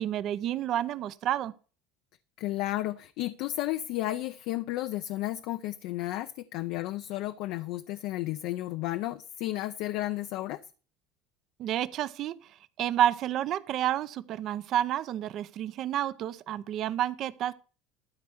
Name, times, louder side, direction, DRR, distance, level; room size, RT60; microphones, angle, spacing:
voice 1, 0.0-1.5 11.6-12.4 12.8-17.5, right 11 dB, 50° right, 0.6 m, -30 dB
voice 2, 2.4-10.6, left 15 dB, 65° left, 0.5 m, -33 dB
12.5 x 4.3 x 7.8 m
supercardioid pair, 120°, 0 cm